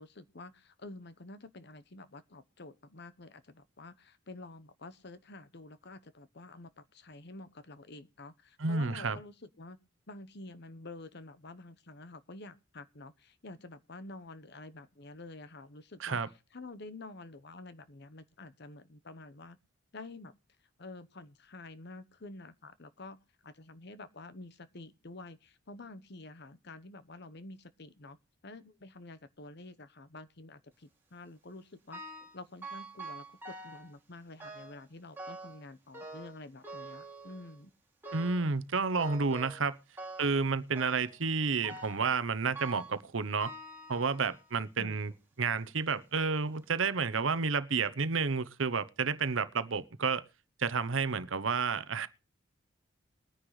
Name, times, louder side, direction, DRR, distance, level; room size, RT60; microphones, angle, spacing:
voice 1, 0.0-9.8 10.1-16.2 16.5-19.6 19.9-20.3 20.8-23.2 23.4-28.2 28.4-32.0 32.3-37.7 44.8-45.0, left 2 dB, 55° left, 1.0 m, -49 dB
voice 2, 8.6-9.2 16.0-16.3 38.1-39.8 40.2-43.5 43.9-45.1 45.4-50.2 50.6-52.1, right 4 dB, 70° right, 0.9 m, -30 dB
sound 1, 31.9-32.4 32.6-33.9 34.4-34.8 35.2-35.6 35.9-37.6 38.0-38.5 39.0-39.7 40.0-40.4 40.8-41.2 41.6-42.1 42.6-43.0 43.4-44.5 45.1-45.2 46.0-46.1 46.6-46.7, right 2 dB, 10° right, 2.6 m, -45 dB
21.0 x 9.9 x 3.2 m
head